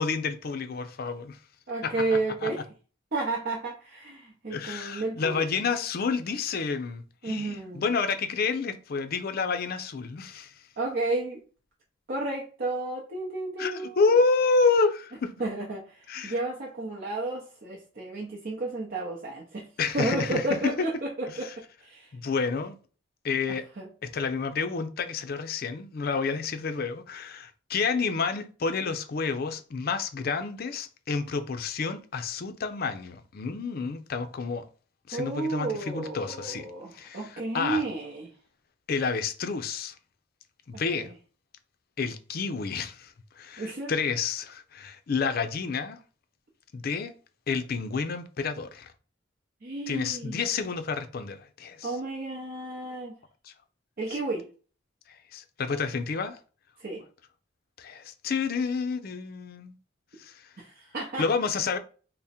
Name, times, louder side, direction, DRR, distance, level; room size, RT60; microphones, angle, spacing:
voice 1, 0.0-1.4 1.8-2.0 2.4-2.5 4.5-10.5 13.6-15.3 16.1-16.3 19.8-20.9 21.4-21.5 22.1-22.8 23.2-23.7 24.0-34.6 35.1-36.7 36.9-37.8 38.9-39.9 40.7-41.1 42.0-46.0 46.7-47.1 47.5-48.9 49.9-51.9 53.4-53.5 54.1-54.2 55.3-56.4 57.8-59.7 60.2-60.5 61.2-61.8, left 4 dB, 50° left, 0.4 m, -29 dB
voice 2, 1.7-2.6 3.1-5.7 7.2-7.9 10.8-11.4 12.1-14.1 15.4-19.7 19.9-22.1 23.5-23.9 35.1-38.3 40.7-41.1 43.6-43.9 49.6-50.4 51.8-53.1 54.0-54.5 56.8-57.0 60.6-61.2, right 2 dB, 50° right, 0.7 m, -32 dB
3.5 x 2.1 x 4.1 m
head